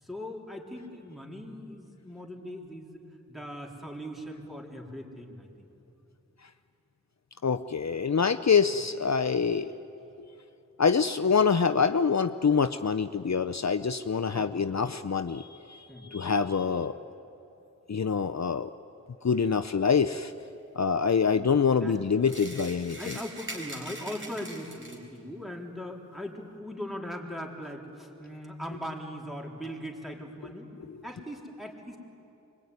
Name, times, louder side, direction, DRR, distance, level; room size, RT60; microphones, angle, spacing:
voice 1, 0.0-3.0 3.3-5.7 14.3-14.9 15.9-16.1 21.3-22.4 23.0-30.7 31.0-32.0, equal, ahead, -1 dB, 3.9 m, -40 dB
voice 2, 7.4-9.7 10.2-10.3 10.8-17.0 17.9-18.7 19.2-20.3 20.7-23.2, left 6 dB, 60° left, 9 dB, 0.6 m, -25 dB
sound 1, 22.2-25.2, right 1 dB, 40° right, 4.5 m, -42 dB
25.0 x 23.0 x 9.7 m, 2.8 s
wide cardioid pair, 55°, 32 cm